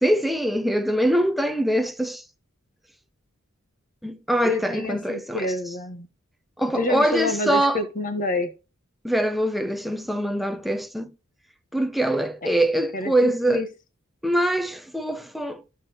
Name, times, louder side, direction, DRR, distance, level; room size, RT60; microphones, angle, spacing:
voice 1, 0.0-2.2 4.0-5.5 6.6-7.8 9.0-11.1 11.7-13.6 14.2-15.6, right 1 dB, ahead, 0.5 m, -23 dB
voice 2, 4.4-6.1 6.7-8.5 12.4-12.5 12.9-13.7, left 2 dB, 40° left, 1.2 m, -27 dB
11.0 x 6.9 x 2.9 m
head